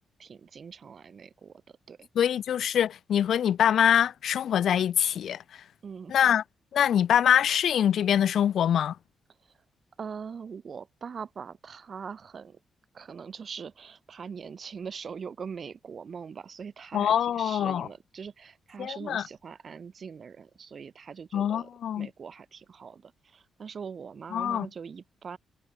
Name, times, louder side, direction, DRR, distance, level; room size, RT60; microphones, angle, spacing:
voice 1, 0.2-2.1 5.8-6.1 9.4-9.5 10.0-12.6 12.9-21.7 22.0-25.4, right 6 dB, 55° right, 6.1 m, -42 dB
voice 2, 2.2-5.6 6.1-6.4 6.7-9.0 16.9-17.9 18.8-19.2 21.3-22.1 24.3-24.7, left 9 dB, 70° left, 0.3 m, -24 dB
supercardioid pair, 60°, 0 cm